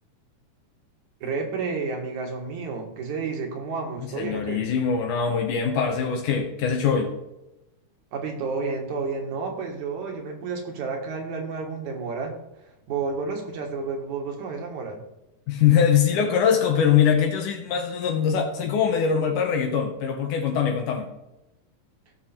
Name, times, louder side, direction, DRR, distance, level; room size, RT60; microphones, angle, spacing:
voice 1, 1.2-4.6 8.1-12.4 12.9-15.0, right 4 dB, 65° right, 3 dB, 2.9 m, -31 dB
voice 2, 4.2-7.1 15.5-21.1, left 7 dB, 80° left, 3 dB, 2.5 m, -22 dB
15.0 x 6.3 x 4.4 m, 0.94 s
omnidirectional pair, 3.7 m